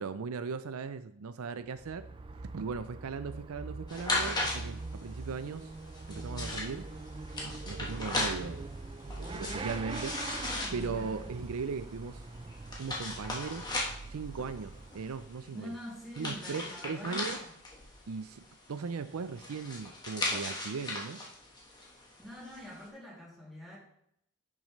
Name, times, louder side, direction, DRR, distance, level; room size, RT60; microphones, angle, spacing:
voice 1, 0.0-2.1 2.4-5.7 6.1-6.9 7.4-8.7 9.2-10.2 10.7-12.2 12.8-13.7 14.1-15.8 16.2-17.4 18.1-21.2, right 5 dB, 85° right, 12 dB, 0.5 m, -38 dB
Motorcycle / Accelerating revving vroom, 1.6-15.5, right 2 dB, 25° right, 0.4 m, -43 dB
sound 1, 3.9-22.8, left 2 dB, 20° left, 1.4 m, -38 dB
voice 2, 15.5-17.6 22.2-23.8, equal, ahead, -7 dB, 2.7 m, -45 dB
10.5 x 6.3 x 3.2 m, 0.72 s
head